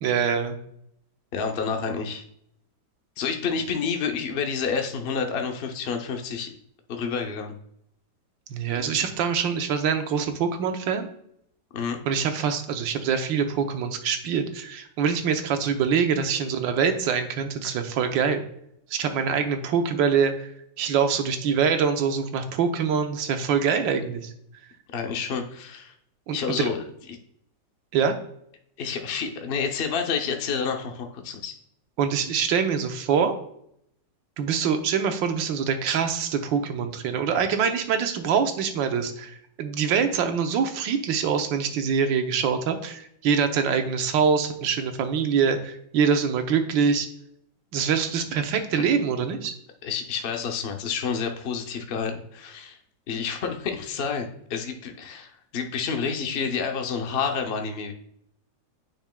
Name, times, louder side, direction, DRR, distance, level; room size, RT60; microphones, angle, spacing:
voice 1, 0.0-0.6 8.5-11.1 12.0-18.4 18.9-20.5 20.8-24.3 26.3-26.7 27.9-28.1 32.0-33.3 34.4-47.1 47.7-49.5, right 6 dB, 90° right, 7 dB, 1.5 m, -24 dB
voice 2, 1.3-2.2 3.2-6.5 6.9-7.5 11.7-12.0 24.9-25.9 26.3-26.8 28.8-31.5 49.8-52.8 53.1-57.9, left 6 dB, 65° left, 4 dB, 0.6 m, -29 dB
8.9 x 6.1 x 2.2 m, 0.71 s
omnidirectional pair, 2.0 m